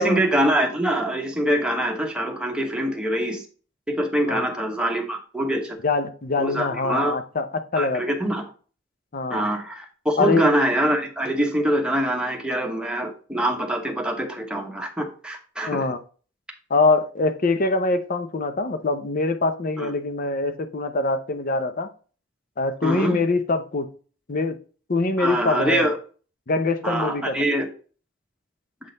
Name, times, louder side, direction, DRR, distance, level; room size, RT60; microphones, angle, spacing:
voice 1, 0.0-3.4 3.9-5.8 6.4-7.2 7.7-8.4 9.3-15.9 19.8-19.9 22.8-23.2 25.2-26.0 26.8-27.6, right 1 dB, 5° right, 1 dB, 1.0 m, -24 dB
voice 2, 5.8-7.5 7.7-8.0 9.1-9.5 10.2-10.5 15.7-16.0 16.7-21.9 22.6-23.9 24.3-24.6 24.9-25.9 26.5-27.4, left 3 dB, 45° left, 9 dB, 0.6 m, -23 dB
7.7 x 3.8 x 4.0 m, 0.40 s
head